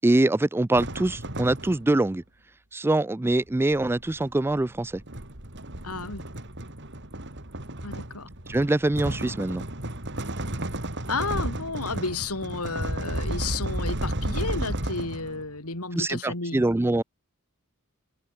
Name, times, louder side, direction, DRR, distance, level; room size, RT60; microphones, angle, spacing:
voice 1, 0.0-2.2 2.7-5.0 8.5-9.6 15.9-17.0, right 2 dB, 10° right, 0.3 m, -24 dB
sound 1, 0.7-2.1 3.3-15.5, right 1 dB, 55° right, 5.1 m, -33 dB
voice 2, 5.8-6.2 7.8-8.3 11.1-16.6, left 3 dB, 85° left, 4.3 m, -32 dB
head